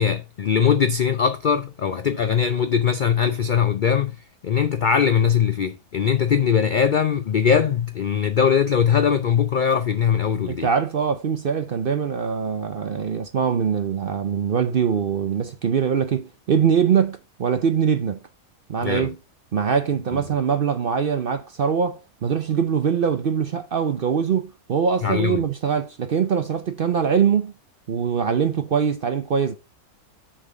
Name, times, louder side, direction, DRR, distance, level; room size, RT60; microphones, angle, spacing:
voice 1, 0.0-4.1 4.4-10.7 18.8-19.1 20.1-20.2 25.0-25.4, left 7 dB, 70° left, 0.4 m, -21 dB
voice 2, 10.5-18.2 18.7-19.2 19.5-27.5 27.9-29.6, right 7 dB, 55° right, 0.6 m, -23 dB
6.2 x 4.0 x 6.3 m
omnidirectional pair, 1.5 m